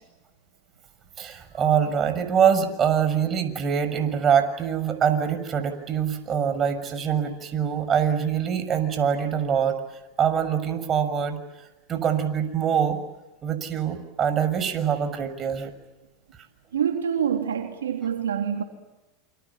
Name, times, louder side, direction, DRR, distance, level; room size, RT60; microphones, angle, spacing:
voice 1, 1.2-9.8 10.2-11.4 11.9-13.0 13.4-15.7, right 8 dB, 35° right, 6.7 m, -24 dB
voice 2, 16.7-18.6, right 8 dB, 90° right, 3.5 m, -26 dB
29.0 x 27.0 x 7.5 m
hypercardioid pair, 95°, 0 cm